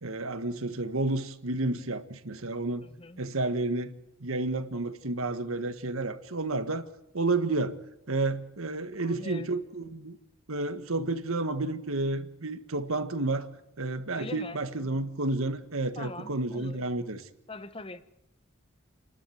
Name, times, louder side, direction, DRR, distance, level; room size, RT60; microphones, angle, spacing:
voice 1, 0.0-2.8 3.2-3.9 4.2-6.8 7.1-7.7 8.1-10.2 10.5-13.5 13.8-17.3, right 2 dB, 80° right, 1.6 m, -31 dB
voice 2, 2.8-3.2 9.0-9.5 14.1-15.1 15.9-16.8 17.5-18.1, left 2 dB, 25° left, 1.1 m, -43 dB
29.5 x 12.5 x 9.5 m
head